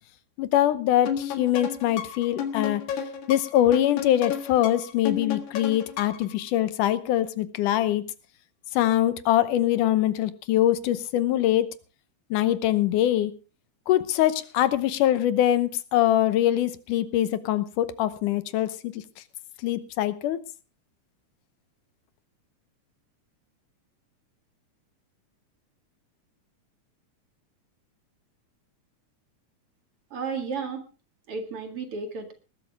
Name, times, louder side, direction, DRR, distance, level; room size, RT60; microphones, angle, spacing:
voice 1, 0.4-2.8 3.3-8.0 8.7-11.7 12.3-13.3 13.9-19.0 19.6-20.4, left 12 dB, 90° left, 14 dB, 2.5 m, -23 dB
sound 1, 1.1-6.3, left 9 dB, 70° left, 3.0 m, -32 dB
voice 2, 30.1-30.9 31.3-32.3, right 5 dB, 50° right, 5 dB, 2.8 m, -33 dB
19.5 x 12.5 x 3.5 m, 0.32 s
omnidirectional pair, 3.5 m